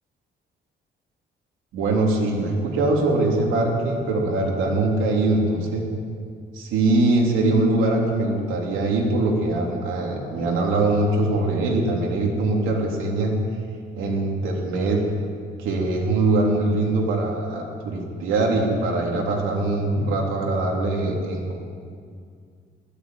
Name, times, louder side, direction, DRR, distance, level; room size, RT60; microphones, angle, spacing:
voice 1, 1.7-5.8 6.5-13.3 13.9-15.0 15.6-21.6, right 2 dB, 90° right, -1 dB, 3.6 m, -22 dB
20.0 x 14.0 x 9.5 m, 2.2 s
cardioid pair, 90°, 20 cm